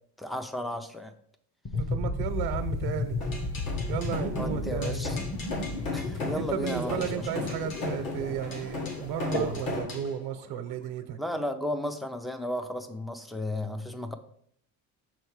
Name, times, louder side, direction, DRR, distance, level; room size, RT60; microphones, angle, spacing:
voice 1, 0.2-1.1 4.4-5.2 5.9-7.1 7.4-7.5 11.2-14.1, left 1 dB, ahead, 9 dB, 0.3 m, -34 dB
sound 1, 1.6-10.5, left 3 dB, 25° left, 0.9 m, -34 dB
voice 2, 1.7-3.2 3.9-5.1 6.4-11.2, right 9 dB, 90° right, 7 dB, 0.8 m, -34 dB
sound 2, 2.2-9.8, right 1 dB, 85° left, 2.5 m, -42 dB
sound 3, 3.2-10.1, left 3 dB, 65° left, 1.8 m, -36 dB
6.3 x 4.5 x 4.7 m, 0.66 s
cardioid pair, 150°, 37 cm